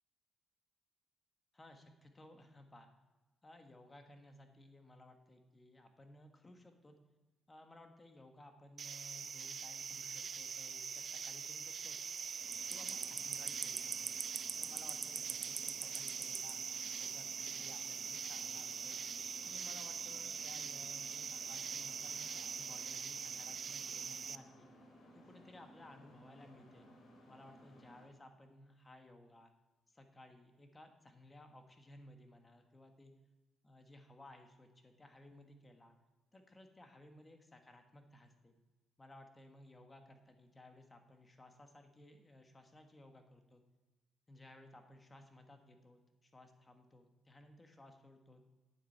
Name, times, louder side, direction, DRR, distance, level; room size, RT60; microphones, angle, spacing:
voice 1, 1.5-2.9 3.4-7.0 7.5-12.0 12.7-14.1 14.5-19.0 19.4-24.7 25.1-26.9 27.2-29.5 29.9-33.1 33.6-36.0 36.3-38.5 39.0-43.6 44.3-48.4, left 1 dB, 20° left, 5 dB, 1.3 m, -59 dB
sound 1, 8.8-24.4, right 6 dB, 50° right, 0.4 m, -42 dB
sound 2, 12.4-28.1, equal, 65° left, 3.5 m, -60 dB
9.4 x 7.4 x 4.6 m, 1.1 s
cardioid pair, 90°, 0 cm